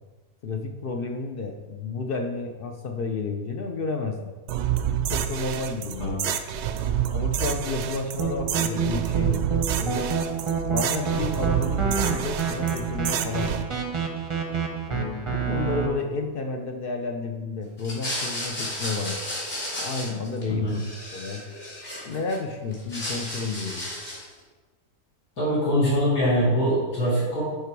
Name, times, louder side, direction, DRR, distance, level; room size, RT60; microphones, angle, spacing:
voice 1, 0.4-4.3 5.1-6.2 7.1-9.5 9.8-10.1 10.7-13.6 14.9-19.2 19.8-20.8 21.1-21.4 22.0-23.9, left 4 dB, 60° left, 4 dB, 0.6 m, -31 dB
sound 1, 4.5-13.6, right 10 dB, 65° right, 0.7 m, -28 dB
sound 2, 8.2-15.9, right 6 dB, 30° right, 0.6 m, -28 dB
sound 3, 17.8-20.4 20.7-22.4 22.7-24.3, left 1 dB, 40° left, 2.7 m, -33 dB
voice 2, 25.4-27.4, equal, 75° left, -10 dB, 3.0 m, -23 dB
10.5 x 3.5 x 4.6 m, 1.3 s
omnidirectional pair, 1.5 m